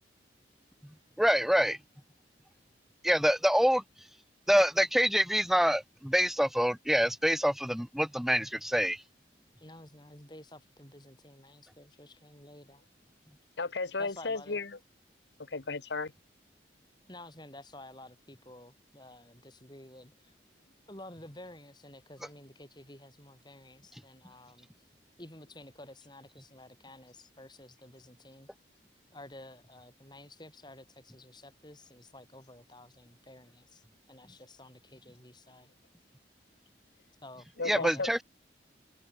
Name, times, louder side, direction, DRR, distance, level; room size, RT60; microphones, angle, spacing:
voice 1, 1.2-1.8 3.0-3.8 4.5-9.0 37.7-38.2, equal, ahead, 0.7 m, -26 dB
voice 2, 9.6-12.8 14.0-14.6 17.1-20.3 20.9-24.7 25.2-28.5 29.1-33.8 34.1-35.7 37.2-38.1, left 1 dB, 25° left, 6.5 m, -51 dB
voice 3, 13.6-14.8 15.5-16.1 37.6-38.1, left 3 dB, 70° left, 1.1 m, -34 dB
head